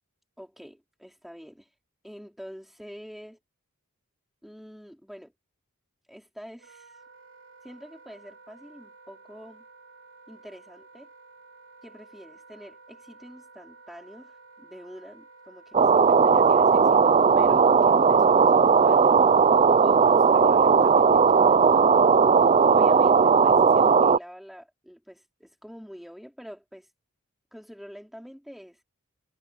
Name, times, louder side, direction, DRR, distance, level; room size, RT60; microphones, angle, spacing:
voice 1, 0.4-1.7 2.0-3.4 4.4-5.3 6.1-7.0 7.6-9.6 10.3-11.1 11.8-19.2 19.8-22.1 22.7-26.9 27.5-28.8, equal, ahead, 4.8 m, -46 dB
Wind instrument woodwind instrument, 6.6-21.5, right 3 dB, 70° right, 3.1 m, -52 dB
sound 1, 15.7-24.2, right 5 dB, 30° right, 0.4 m, -18 dB
head